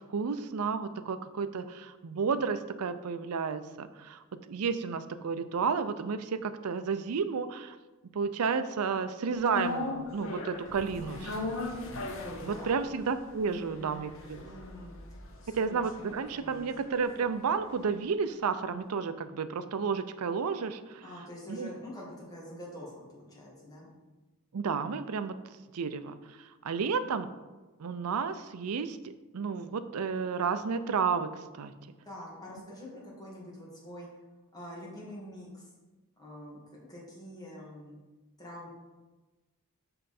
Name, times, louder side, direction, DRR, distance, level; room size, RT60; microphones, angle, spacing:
voice 1, 0.0-7.8 8.1-11.6 12.4-14.4 15.5-21.0 21.5-21.7 24.5-25.4 25.7-27.3 27.8-31.7, right 5 dB, 85° right, 12 dB, 0.5 m, -32 dB
sound 1, 9.5-17.8 18.1-18.2, left 2 dB, 60° left, 0.8 m, -40 dB
voice 2, 10.7-11.4 12.1-12.7 13.4-16.7 21.0-23.9 32.0-34.1 34.5-35.7 36.2-36.6 36.9-38.0 38.4-38.7, equal, 15° left, -6 dB, 2.0 m, -46 dB
6.3 x 5.5 x 4.2 m, 1.2 s
head